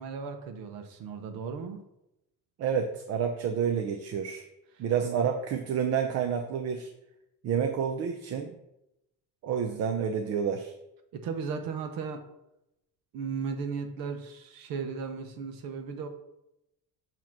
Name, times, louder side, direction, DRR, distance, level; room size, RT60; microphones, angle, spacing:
voice 1, 0.0-1.8 5.0-5.3 11.1-12.2 13.1-16.1, right 5 dB, 70° right, 7 dB, 1.0 m, -36 dB
voice 2, 2.6-4.5 4.8-6.9 7.4-8.5 9.4-10.7, right 7 dB, 45° right, 5 dB, 0.5 m, -29 dB
7.3 x 3.0 x 5.9 m, 0.86 s
cardioid pair, 170°, 37 cm